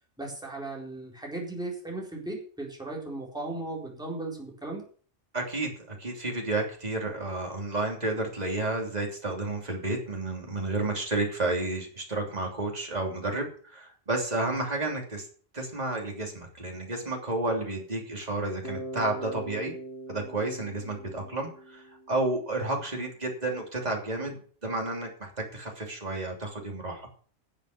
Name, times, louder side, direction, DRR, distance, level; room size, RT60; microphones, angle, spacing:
voice 1, 0.2-4.8, right 2 dB, 5° right, -3 dB, 4.0 m, -36 dB
voice 2, 5.3-15.2 15.5-19.7 20.1-27.1, right 2 dB, 35° right, 1 dB, 3.1 m, -31 dB
Bass guitar, 18.6-22.6, right 2 dB, 55° left, 4.1 m, -41 dB
12.0 x 7.5 x 6.8 m, 0.44 s
omnidirectional pair, 1.2 m